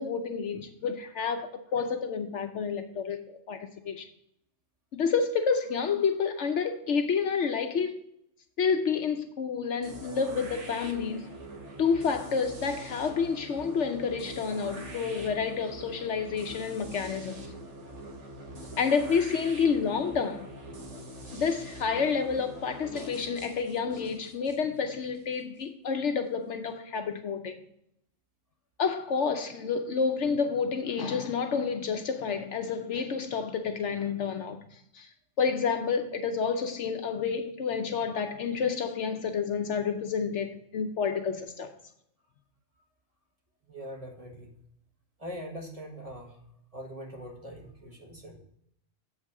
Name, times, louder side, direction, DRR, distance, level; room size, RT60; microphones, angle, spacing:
voice 1, 0.0-4.1 4.9-8.0 8.6-11.3 11.8-17.5 18.8-20.5 21.3-27.6 28.8-34.6 34.9-35.1 35.4-41.7, left 5 dB, 65° left, 0.9 m, -29 dB
sound 1, 9.8-25.6, right 1 dB, 60° right, 1.5 m, -44 dB
voice 2, 43.7-44.5 45.2-46.4 46.7-48.4, equal, 30° right, 1.5 m, -42 dB
8.0 x 5.5 x 4.7 m
omnidirectional pair, 1.4 m